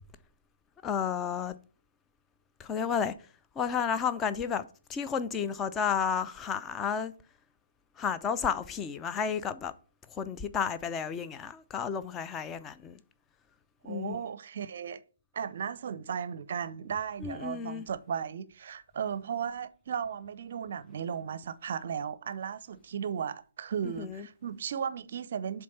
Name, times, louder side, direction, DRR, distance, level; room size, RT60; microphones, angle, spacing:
voice 1, 0.8-1.6 2.6-3.1 3.6-7.1 8.0-9.7 10.1-13.0 13.9-14.2 17.2-17.8 23.8-24.3, left 7 dB, 15° left, 0.5 m, -32 dB
voice 2, 13.8-15.0 15.3-25.6, right 7 dB, 45° right, 0.5 m, -35 dB
7.5 x 3.5 x 5.6 m
figure-of-eight pair, 135°, 0 cm